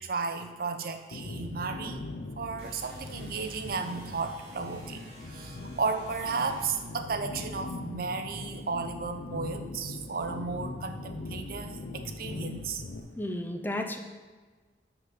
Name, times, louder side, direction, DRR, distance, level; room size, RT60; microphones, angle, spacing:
voice 1, 0.0-2.0 2.4-12.8, right 4 dB, 55° right, 6 dB, 0.6 m, -34 dB
sound 1, 1.1-13.0, left 2 dB, 60° left, 0.6 m, -40 dB
sound 2, 2.6-7.0, right 1 dB, 35° right, 1.7 m, -52 dB
voice 2, 13.2-14.0, left 1 dB, 10° left, 4 dB, 0.5 m, -33 dB
6.0 x 5.3 x 5.8 m, 1.4 s
head